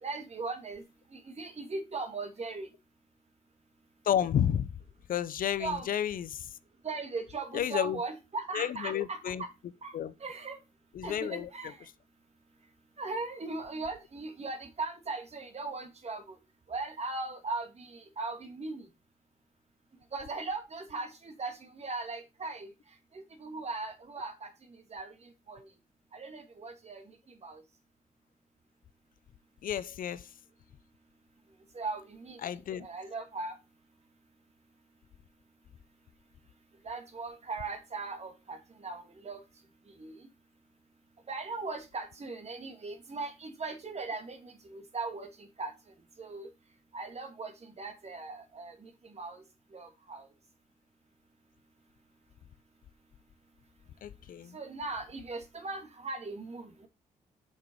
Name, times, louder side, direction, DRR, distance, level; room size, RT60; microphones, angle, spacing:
voice 1, 0.0-0.8 1.1-2.7 5.6-5.9 6.8-9.5 9.8-10.6 11.0-11.9 13.0-16.4 16.7-18.9 20.1-22.7 23.1-25.7 26.1-27.6 31.7-33.6 36.8-39.4 40.0-40.3 41.3-45.7 46.2-46.5 46.9-49.4 49.7-50.3 54.5-56.9, right 3 dB, 45° right, 2.4 m, -39 dB
voice 2, 4.0-4.7 5.1-6.5 7.5-8.0 8.5-9.4 9.9-10.1 10.9-11.5 29.6-30.3 32.4-32.9 54.0-54.6, left 9 dB, 70° left, 0.7 m, -31 dB
6.6 x 5.9 x 4.6 m
cardioid pair, 65°, 15 cm